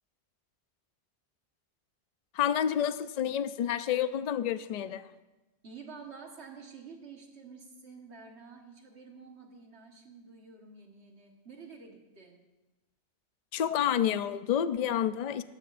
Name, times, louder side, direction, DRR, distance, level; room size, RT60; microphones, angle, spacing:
voice 1, 2.3-5.1 13.5-15.4, left 9 dB, 55° left, 13 dB, 0.4 m, -29 dB
voice 2, 5.6-12.4, right 5 dB, 70° right, 2 dB, 1.8 m, -49 dB
17.5 x 13.0 x 2.6 m, 1.1 s
omnidirectional pair, 1.2 m